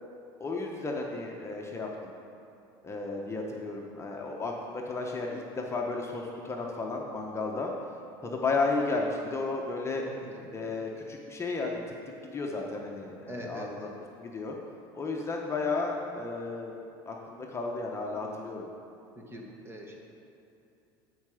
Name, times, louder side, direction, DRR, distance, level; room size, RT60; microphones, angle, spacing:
voice 1, 0.4-2.1 2.8-7.7 8.2-10.0 10.5-11.8 12.3-13.9 14.2-14.6 14.9-16.8 17.1-18.7, left 3 dB, 25° left, 0 dB, 1.1 m, -33 dB
voice 2, 10.1-10.5 13.3-13.7 19.1-20.0, equal, 20° right, 0 dB, 1.6 m, -43 dB
12.5 x 4.8 x 5.0 m, 2.8 s
supercardioid pair, 100°, 11 cm